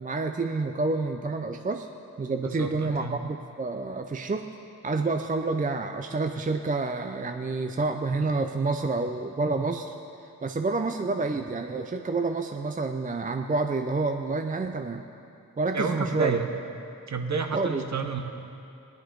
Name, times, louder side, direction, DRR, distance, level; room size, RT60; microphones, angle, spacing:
voice 1, 0.0-1.9 2.2-4.5 4.8-9.9 10.4-15.0 15.6-16.4 17.5-17.8, right 3 dB, 20° right, 6 dB, 0.5 m, -28 dB
voice 2, 2.4-3.2 15.7-16.5 17.1-18.2, right 4 dB, 45° right, 5 dB, 1.1 m, -29 dB
18.0 x 10.5 x 3.8 m, 2.7 s
cardioid pair, 90°, 37 cm